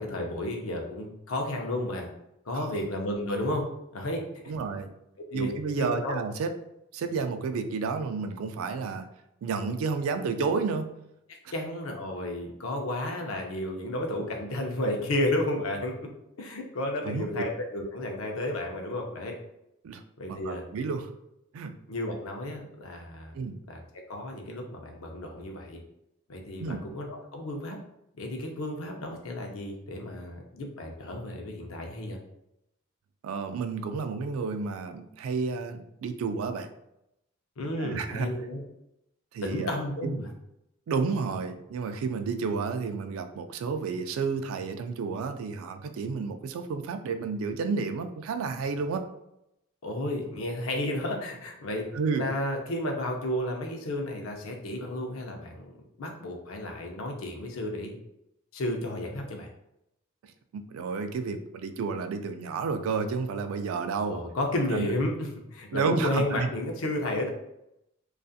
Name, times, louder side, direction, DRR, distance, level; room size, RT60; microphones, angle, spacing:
voice 1, 0.0-2.1 2.5-3.7 3.9-4.2 5.3-6.2 11.5-16.1 16.4-19.4 20.2-20.6 21.9-23.3 23.7-23.8 24.1-25.8 26.3-27.8 28.2-32.2 37.6-38.6 39.4-40.3 49.8-51.9 52.1-58.0 58.5-59.5 64.0-67.3, left 1 dB, 80° left, 2 dB, 0.5 m, -32 dB
voice 2, 4.5-4.9 5.3-6.5 6.9-9.1 9.4-10.9 17.0-17.4 19.8-20.0 20.3-21.1 21.5-21.7 23.3-23.6 26.6-26.8 33.2-36.7 37.8-38.3 39.3-39.8 40.0-40.1 40.9-49.1 51.9-52.3 60.5-64.2 64.7-64.9 65.7-66.5, right 5 dB, 85° right, 9 dB, 0.3 m, -31 dB
2.6 x 2.4 x 2.4 m, 0.83 s
head